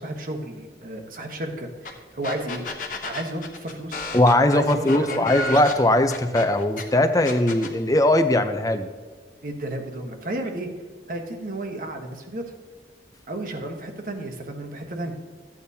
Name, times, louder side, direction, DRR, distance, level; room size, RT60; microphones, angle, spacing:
voice 1, 0.0-2.7 3.0-4.1 4.5-5.3 9.4-10.7 11.1-12.5 13.3-15.1, right 1 dB, 50° right, 3 dB, 1.2 m, -32 dB
sound 1, 1.8-1.9 2.2-6.8 7.2-7.7, left 2 dB, 50° left, 1.1 m, -32 dB
voice 2, 4.1-8.9, left 1 dB, 20° left, 9 dB, 0.6 m, -20 dB
13.5 x 8.6 x 2.8 m, 1.5 s
head